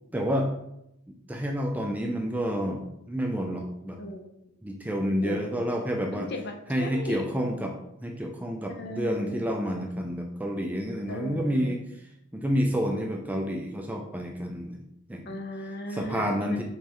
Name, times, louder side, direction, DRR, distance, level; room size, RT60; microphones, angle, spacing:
voice 1, 0.1-0.5 1.1-4.0 4.6-6.3 6.7-7.7 8.0-11.8 12.3-14.8 15.1-15.3 15.9-16.6, equal, 5° right, 2 dB, 0.3 m, -29 dB
voice 2, 4.0-4.5 5.2-5.7 6.1-7.3 8.7-9.4 11.1-11.8 15.3-16.6, left 1 dB, 45° left, 4 dB, 0.5 m, -37 dB
5.5 x 3.2 x 2.9 m, 0.83 s
head